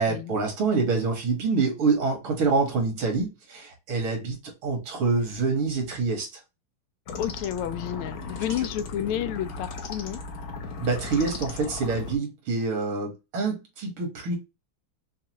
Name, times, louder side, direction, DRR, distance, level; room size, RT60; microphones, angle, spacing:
voice 1, 0.0-6.4 8.6-8.7 10.8-14.3, right 4 dB, 80° right, 2.3 m, -26 dB
sound 1, 7.1-12.2, left 3 dB, 60° left, 1.0 m, -36 dB
voice 2, 7.2-10.2, left 11 dB, 90° left, 1.4 m, -31 dB
5.8 x 2.3 x 2.9 m
omnidirectional pair, 2.3 m